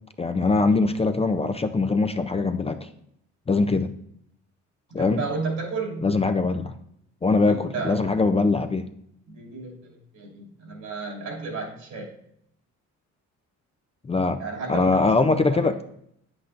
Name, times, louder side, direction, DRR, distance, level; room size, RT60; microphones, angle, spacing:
voice 1, 0.2-2.9 3.5-3.9 4.9-5.2 6.0-6.7 7.2-8.9 14.0-14.4 14.7-15.7, left 3 dB, 20° left, 8 dB, 0.4 m, -22 dB
voice 2, 4.9-6.1 7.4-8.1 9.3-12.1 14.4-15.1 15.5-15.7, right 4 dB, 70° right, -1 dB, 2.5 m, -33 dB
8.7 x 7.9 x 2.5 m, 0.73 s
cardioid pair, 90°, 30 cm